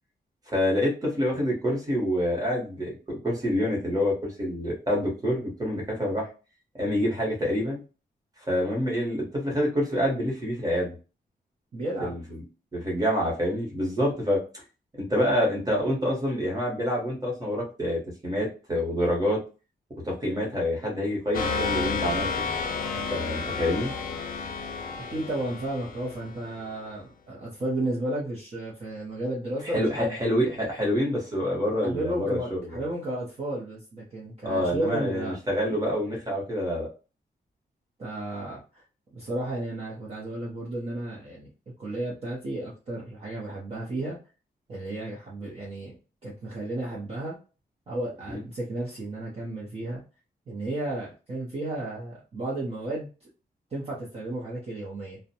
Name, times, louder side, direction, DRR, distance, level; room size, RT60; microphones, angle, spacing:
voice 1, 0.5-6.3 6.8-7.8 8.5-10.9 12.0-12.2 12.7-14.6 15.0-19.4 20.0-22.3 22.9-23.9 29.7-32.4 34.4-36.9 48.3-48.4, equal, 20° right, -2 dB, 1.0 m, -27 dB
voice 2, 11.7-12.1 25.1-30.2 31.7-35.4 38.0-38.8 39.1-41.5 41.8-44.2 44.7-47.4 47.9-50.0 50.5-53.3 53.7-55.2, right 1 dB, 40° right, -5 dB, 0.6 m, -33 dB
sound 1, 21.3-26.8, left 4 dB, 60° left, 0.5 m, -31 dB
2.5 x 2.1 x 2.7 m, 0.34 s
wide cardioid pair, 175°, 17 cm